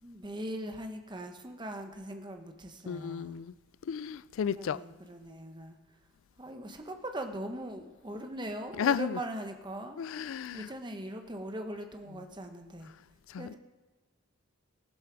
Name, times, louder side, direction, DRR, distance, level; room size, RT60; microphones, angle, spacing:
voice 1, 0.0-3.4 4.5-5.8 6.4-10.0 10.5-12.9 13.4-13.6, right 1 dB, 20° right, 1.0 m, -40 dB
voice 2, 2.9-3.5 3.9-4.8 8.8-9.2 10.0-10.7 13.3-13.5, left 7 dB, 75° left, 0.3 m, -33 dB
15.0 x 12.0 x 4.7 m
head